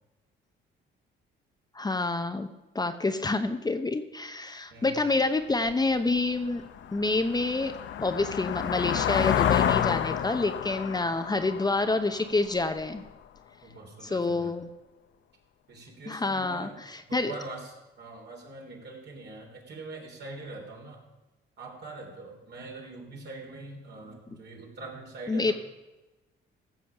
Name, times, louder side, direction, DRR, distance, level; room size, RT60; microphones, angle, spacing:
voice 1, 1.7-2.5 2.7-6.6 6.9-7.7 8.0-13.1 14.0-14.7 16.1-17.3 25.3-25.5, left 3 dB, 20° left, 8 dB, 0.8 m, -28 dB
voice 2, 4.7-5.0 13.6-14.5 15.7-16.8 17.1-21.0 21.6-25.5, right 3 dB, 60° right, 0 dB, 3.4 m, -43 dB
sound 1, 5.7-5.8 6.3-12.9, left 9 dB, 70° left, 0.8 m, -29 dB
15.5 x 7.1 x 5.8 m, 1.1 s
cardioid pair, 90°, 20 cm